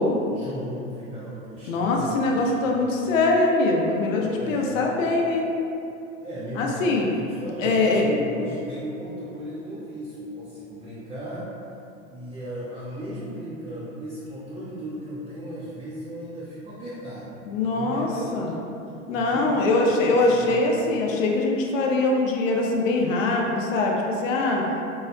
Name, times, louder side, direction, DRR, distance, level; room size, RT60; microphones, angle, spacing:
voice 1, 0.3-3.1 4.2-4.9 6.2-11.5 12.1-18.3 18.6-18.8 19.1-21.0, equal, 10° right, -10 dB, 0.4 m, -36 dB
voice 2, 1.7-5.5 6.6-7.1 7.6-8.0 17.5-18.6 19.1-24.6, left 2 dB, 65° left, 0 dB, 0.6 m, -23 dB
4.6 x 2.0 x 2.5 m, 2.6 s
hypercardioid pair, 95°, 42 cm